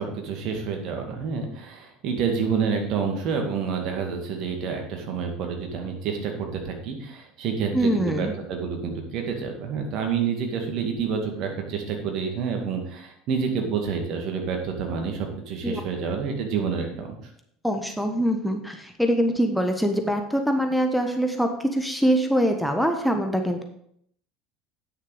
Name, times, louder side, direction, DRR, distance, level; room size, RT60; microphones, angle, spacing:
voice 1, 0.0-17.2, right 6 dB, 50° right, 3 dB, 2.2 m, -28 dB
voice 2, 7.7-8.3 15.6-15.8 17.6-23.6, equal, ahead, 4 dB, 1.3 m, -23 dB
9.4 x 6.7 x 5.4 m, 0.68 s
figure-of-eight pair, 70°, 0 cm